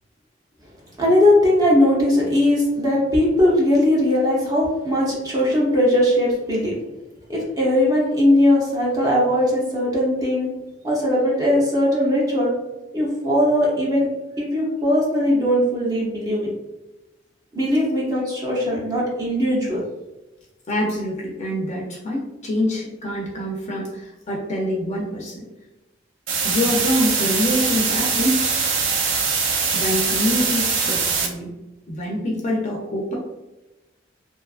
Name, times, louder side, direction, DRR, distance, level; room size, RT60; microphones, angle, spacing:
voice 1, 1.0-6.7 7.3-10.5 10.8-12.5 12.9-14.1 14.4-16.5 17.5-19.8, left 1 dB, 20° right, -4 dB, 0.6 m, -19 dB
voice 2, 20.7-25.5 26.4-28.5 29.7-31.5 31.9-33.2, left 1 dB, 35° left, -2 dB, 0.4 m, -25 dB
sound 1, 26.3-31.3, right 5 dB, 90° right, 0.5 m, -22 dB
2.5 x 2.3 x 2.3 m, 1.0 s
head